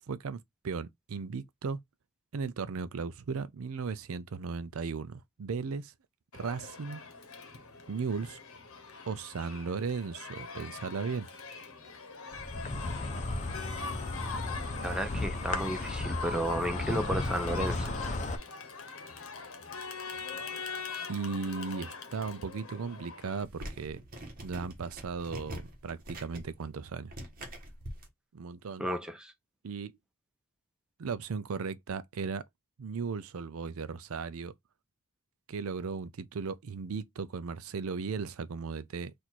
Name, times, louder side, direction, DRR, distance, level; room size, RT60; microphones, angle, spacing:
voice 1, 0.1-1.8 2.3-5.9 6.3-7.0 7.9-8.4 9.1-11.3 21.1-24.0 24.4-27.1 28.3-28.9 29.6-29.9 31.0-32.4 32.8-34.5 35.5-39.1, right 5 dB, 65° right, 0.5 m, -36 dB
Crowd, 6.3-23.4, left 5 dB, 65° left, 1.0 m, -43 dB
Insect, 12.3-18.4, left 2 dB, 35° left, 0.7 m, -34 dB
voice 2, 14.8-17.9 28.8-29.3, right 1 dB, 5° right, 0.6 m, -33 dB
sound 1, 23.4-28.1, right 1 dB, 40° right, 1.4 m, -44 dB
4.2 x 2.6 x 4.4 m
head